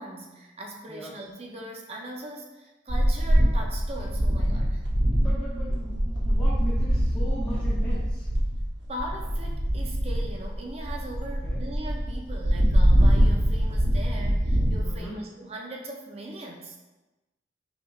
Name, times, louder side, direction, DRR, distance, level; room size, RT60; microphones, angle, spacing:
voice 1, 0.0-4.8 8.9-16.8, right 1 dB, 35° right, 0 dB, 0.6 m, -39 dB
sound 1, 2.9-15.0, equal, 85° right, 0.8 m, -24 dB
voice 2, 5.2-8.3 11.4-11.6 14.8-15.2, right 1 dB, 20° left, -12 dB, 0.9 m, -38 dB
5.7 x 3.2 x 2.4 m, 1.1 s
head